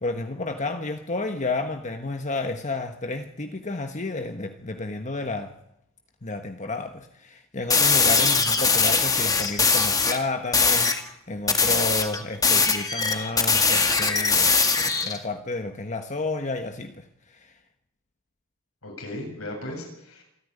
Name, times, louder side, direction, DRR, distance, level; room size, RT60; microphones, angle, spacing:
voice 1, 0.0-5.5 6.2-14.6 15.0-17.0 17.3-17.5, left 2 dB, 35° left, 6 dB, 1.3 m, -31 dB
sound 1, 7.7-10.2 10.5-11.0 11.5-15.2, left 4 dB, 15° left, 1.8 m, -21 dB
voice 2, 18.8-20.2, left 1 dB, 80° left, 1 dB, 7.9 m, -36 dB
26.5 x 10.5 x 9.7 m, 0.77 s
head